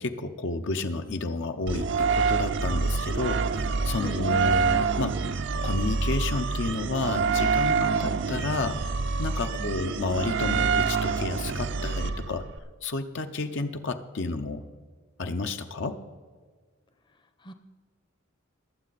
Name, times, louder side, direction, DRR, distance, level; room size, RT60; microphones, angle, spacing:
voice 1, 0.0-5.2 5.6-8.8 9.2-12.4 12.8-14.6 15.2-16.0, left 3 dB, 60° left, 7 dB, 0.7 m, -31 dB
sound 1, 1.7-12.6, right 5 dB, 60° right, 0.6 m, -26 dB
voice 2, 4.0-4.4 8.0-8.2 9.5-9.7 17.4-17.5, left 1 dB, 25° left, 9 dB, 0.8 m, -40 dB
22.0 x 7.5 x 4.1 m, 1.5 s
head